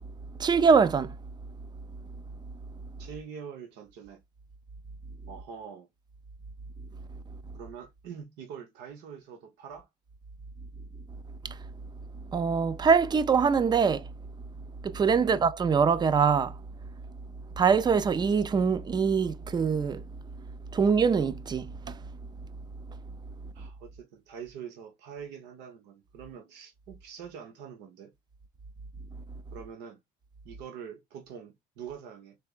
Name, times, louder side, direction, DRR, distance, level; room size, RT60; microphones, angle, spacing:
voice 1, 0.4-1.2 11.4-11.6 12.3-14.1 14.8-16.6 17.6-20.0 20.7-22.0, right 6 dB, 25° right, 0.4 m, -24 dB
voice 2, 3.0-4.2 5.3-5.9 7.5-9.9 15.2-15.4 23.5-28.1 29.5-30.0 30.4-32.4, right 7 dB, 90° right, 1.1 m, -44 dB
3.5 x 3.4 x 2.4 m
cardioid pair, 110°, 17 cm